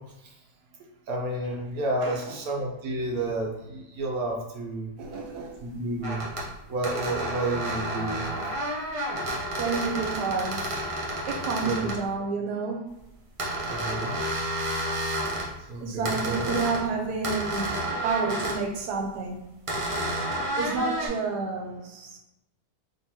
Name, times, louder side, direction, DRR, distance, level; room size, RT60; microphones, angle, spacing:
voice 1, 1.1-4.9 5.6-6.2 6.7-8.2 11.6-11.8 13.7-14.1 15.7-16.4, right 2 dB, 65° right, -1 dB, 1.1 m, -30 dB
voice 2, 2.0-2.4 5.0-5.6 9.6-10.6 11.3-12.9 15.8-19.4 20.6-22.2, right 4 dB, 80° right, 2 dB, 1.3 m, -30 dB
sound 1, 5.1-5.2 6.0-6.5 6.8-12.0 13.4-15.5 16.0-16.8 17.2-18.6 19.7-21.1, right 1 dB, 40° right, 0.4 m, -30 dB
3.7 x 3.0 x 2.8 m, 0.89 s
omnidirectional pair, 1.7 m